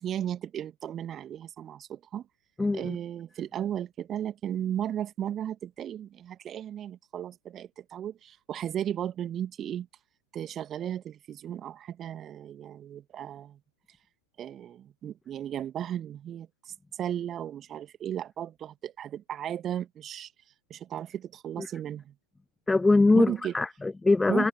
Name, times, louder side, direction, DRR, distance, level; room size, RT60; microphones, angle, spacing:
voice 1, 0.0-2.2 2.7-9.9 10.3-13.6 14.4-20.3 20.7-22.1 23.1-23.5 24.3-24.5, right 10 dB, 30° right, 2.2 m, -35 dB
voice 2, 2.6-3.0 21.6-21.7 22.7-24.5, left 3 dB, 10° left, 0.8 m, -23 dB
figure-of-eight pair, 90°, 0 cm